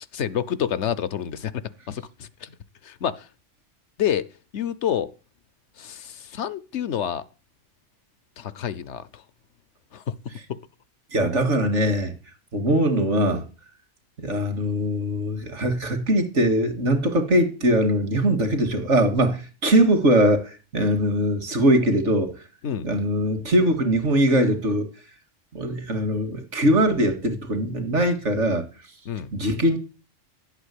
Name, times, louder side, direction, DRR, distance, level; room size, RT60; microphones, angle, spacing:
voice 1, 0.1-2.5 2.8-3.3 4.0-5.1 5.8-7.2 8.4-9.2 9.9-10.0 10.5-10.6 22.6-22.9 29.1-29.3, left 9 dB, 70° left, 1.1 m, -28 dB
voice 2, 11.1-12.1 12.5-13.4 14.2-22.3 22.8-24.9 25.5-28.7 29.3-29.8, right 1 dB, 75° right, 2.3 m, -21 dB
11.5 x 8.2 x 8.3 m
omnidirectional pair, 1.3 m